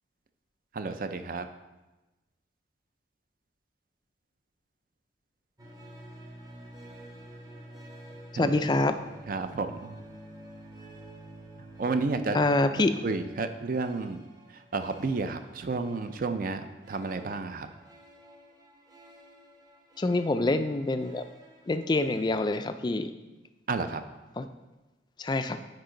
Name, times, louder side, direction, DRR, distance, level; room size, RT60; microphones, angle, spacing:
voice 1, 0.7-1.5 8.4-8.6 9.3-9.9 11.8-12.4 13.0-14.2 14.5-16.6 16.9-17.7 23.7-24.0, right 3 dB, 45° right, 9 dB, 0.4 m, -31 dB
sound 1, 5.6-22.6, right 1 dB, 20° right, 0.8 m, -50 dB
voice 2, 8.4-9.0 12.3-12.9 20.0-21.2 21.7-23.1 24.4-24.5 25.2-25.6, left 2 dB, 25° left, 10 dB, 0.3 m, -26 dB
9.4 x 4.7 x 3.8 m, 1.1 s
head